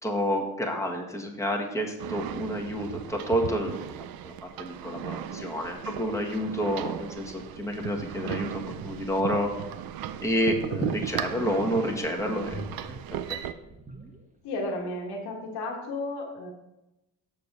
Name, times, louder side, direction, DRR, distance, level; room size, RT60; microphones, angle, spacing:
voice 1, 0.0-4.3 4.6-9.5 10.2-12.6 13.3-13.4, equal, 10° left, 1 dB, 1.4 m, -29 dB
sound 1, 2.0-13.5, right 10 dB, 65° right, 0.6 m, -36 dB
sound 2, 11.3-12.0 12.5-14.7 15.0-15.1, equal, 20° right, 1.2 m, -44 dB
voice 2, 14.4-16.5, left 2 dB, 85° left, 0 dB, 1.5 m, -33 dB
6.9 x 6.7 x 4.0 m, 0.96 s
cardioid pair, 90°, 38 cm